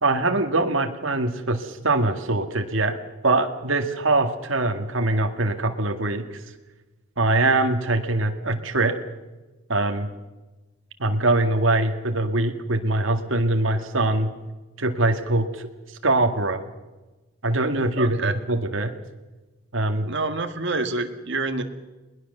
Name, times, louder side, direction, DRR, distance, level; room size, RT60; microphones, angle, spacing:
voice 1, 0.0-3.0 3.2-6.4 7.2-9.0 9.7-10.1 11.0-14.3 14.8-15.7 16.0-16.6 17.4-18.9 19.7-20.1, right 2 dB, 85° right, 5 dB, 2.0 m, -23 dB
voice 2, 18.0-18.3 20.0-21.6, right 3 dB, 65° right, 8 dB, 1.9 m, -27 dB
21.0 x 20.5 x 6.8 m, 1.1 s
head